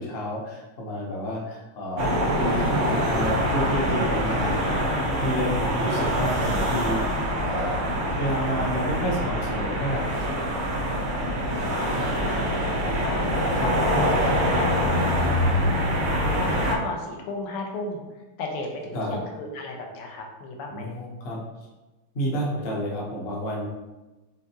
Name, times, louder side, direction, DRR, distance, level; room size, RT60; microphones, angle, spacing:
voice 1, 0.0-2.1 2.4-7.0 7.3-7.9 8.2-10.7 18.9-19.2 20.7-21.4 22.1-23.7, equal, 55° left, -3 dB, 0.6 m, -30 dB
sound 1, 2.0-16.7, equal, 85° right, 0.6 m, -24 dB
voice 2, 11.0-13.2 13.5-15.7 16.1-18.0 18.4-20.9, left 2 dB, 90° left, 1 dB, 1.7 m, -35 dB
5.0 x 3.4 x 2.8 m, 1.1 s
omnidirectional pair, 2.4 m